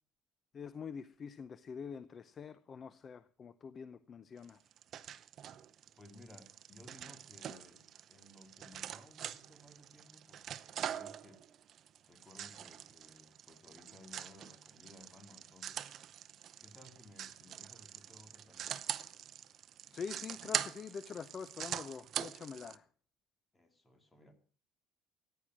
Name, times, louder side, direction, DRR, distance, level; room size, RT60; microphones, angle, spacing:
voice 1, 0.5-4.6 19.9-22.8, left 6 dB, 35° left, 15 dB, 0.6 m, -45 dB
sound 1, 4.4-22.8, right 10 dB, 45° right, 0.7 m, -43 dB
voice 2, 6.0-7.8 8.1-11.4 12.1-15.8 16.6-18.9 23.5-24.3, left 1 dB, 15° left, 6 dB, 2.7 m, -59 dB
15.0 x 10.0 x 6.2 m, 0.42 s
cardioid pair, 135°, 0 cm